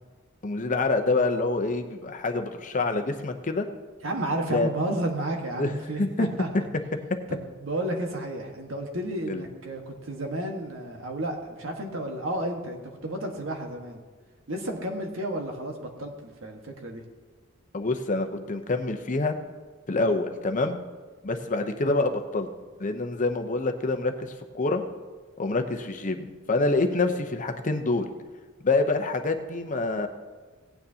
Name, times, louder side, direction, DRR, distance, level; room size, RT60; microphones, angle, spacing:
voice 1, 0.4-3.7 4.5-4.7 5.6-6.3 9.3-9.4 17.7-19.4 19.9-20.8 21.2-22.5 22.8-24.8 25.4-26.2 26.5-28.1 28.6-30.1, left 3 dB, 40° left, 6 dB, 0.8 m, -26 dB
voice 2, 4.0-6.5 7.3-14.0 14.5-17.0, right 1 dB, 80° right, 3 dB, 1.6 m, -32 dB
17.0 x 9.3 x 2.8 m, 1.4 s
head